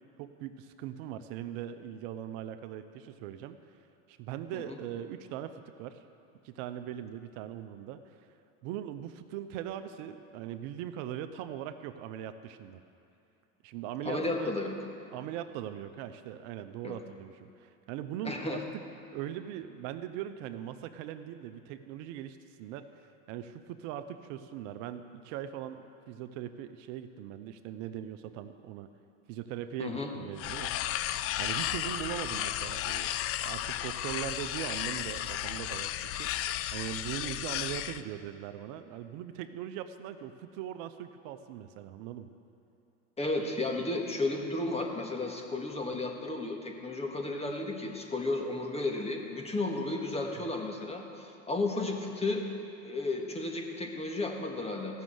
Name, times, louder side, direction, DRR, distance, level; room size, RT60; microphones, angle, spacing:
voice 1, 0.2-3.6 4.1-6.0 6.4-8.2 8.6-12.8 13.6-14.5 15.1-18.8 19.1-28.9 29.3-31.1 31.4-36.3 36.7-42.3, right 11 dB, 65° right, 10 dB, 0.7 m, -40 dB
voice 2, 14.0-14.7 16.8-16.9 18.2-18.6 29.8-30.1 43.2-52.5 52.8-55.0, left 2 dB, 15° left, 1 dB, 1.6 m, -33 dB
sound 1, 30.4-38.0, left 12 dB, 40° left, 0.4 m, -34 dB
15.0 x 6.4 x 7.7 m, 2.7 s
supercardioid pair, 100°, 39 cm